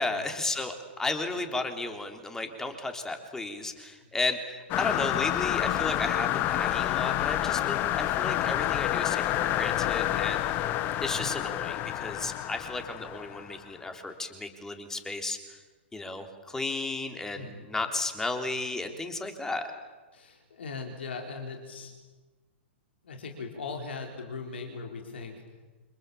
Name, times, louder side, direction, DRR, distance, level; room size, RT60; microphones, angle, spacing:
voice 1, 0.0-10.4 11.0-15.6 15.9-19.7, left 2 dB, 10° left, 6 dB, 3.6 m, -33 dB
sound 1, 4.7-13.6, left 13 dB, 30° left, 1.3 m, -29 dB
voice 2, 17.4-17.7 20.1-21.9 23.0-25.4, left 4 dB, 65° left, 3 dB, 4.2 m, -39 dB
29.5 x 27.0 x 7.3 m, 1.3 s
figure-of-eight pair, 110°, 6 cm